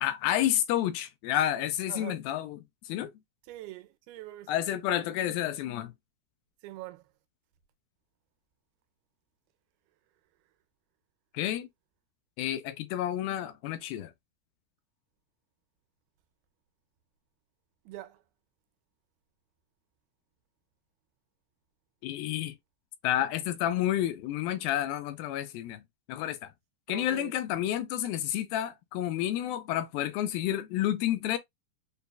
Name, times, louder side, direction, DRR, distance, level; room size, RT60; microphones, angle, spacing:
voice 1, 0.0-2.6 2.9-3.1 4.5-5.9 11.3-11.7 12.4-14.1 22.0-22.6 23.0-25.8 26.1-26.5 26.9-31.4, left 12 dB, 80° left, 2.2 m, -30 dB
voice 2, 3.5-4.5 6.6-7.0 17.9-18.2 26.9-27.3, right 16 dB, 85° right, 2.5 m, -43 dB
6.7 x 2.2 x 2.2 m
omnidirectional pair, 4.4 m